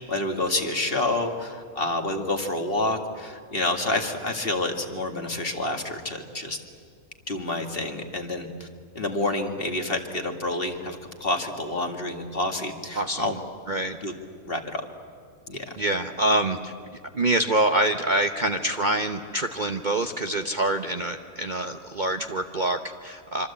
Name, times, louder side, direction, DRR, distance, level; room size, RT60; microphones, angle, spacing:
voice 1, 0.0-6.6 7.3-8.7 8.9-13.4 14.0-14.1 14.5-14.8 15.5-15.8, left 2 dB, 40° left, 4 dB, 2.3 m, -28 dB
voice 2, 12.9-13.3 13.7-14.0 15.8-16.7 17.1-23.5, right 1 dB, 40° right, 6 dB, 0.9 m, -25 dB
25.5 x 25.5 x 8.5 m, 2.2 s
omnidirectional pair, 1.5 m